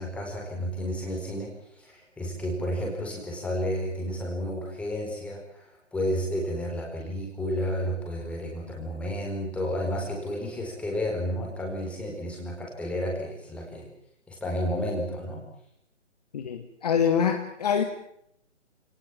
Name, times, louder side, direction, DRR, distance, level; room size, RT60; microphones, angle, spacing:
voice 1, 0.0-13.9 14.3-15.5, equal, 5° left, -1 dB, 4.5 m, -31 dB
voice 2, 16.3-17.8, left 7 dB, 35° left, 6 dB, 1.7 m, -25 dB
28.5 x 19.0 x 7.4 m, 0.72 s
figure-of-eight pair, 145°, 36 cm